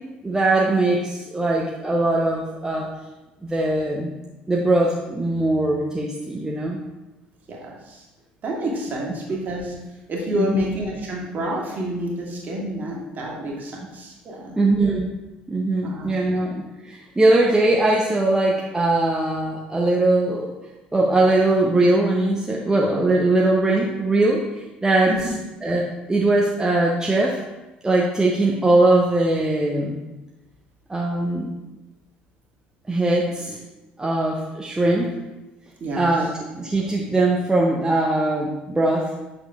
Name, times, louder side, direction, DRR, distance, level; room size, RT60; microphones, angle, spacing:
voice 1, 0.2-2.9 3.4-4.1 4.5-6.8 10.3-10.7 14.6-15.1 15.5-20.5 20.9-25.3 25.6-27.4 27.8-30.0 30.9-31.5 32.9-33.6 34.0-35.1 35.9-39.1, right 2 dB, 15° right, -2 dB, 0.8 m, -21 dB
voice 2, 7.5-8.0 8.4-9.7 10.1-14.6 15.8-16.1 25.1-25.2 35.8-36.0, right 1 dB, 40° right, -3 dB, 1.9 m, -28 dB
8.1 x 6.2 x 2.5 m, 1.0 s
figure-of-eight pair, 60°, 5 cm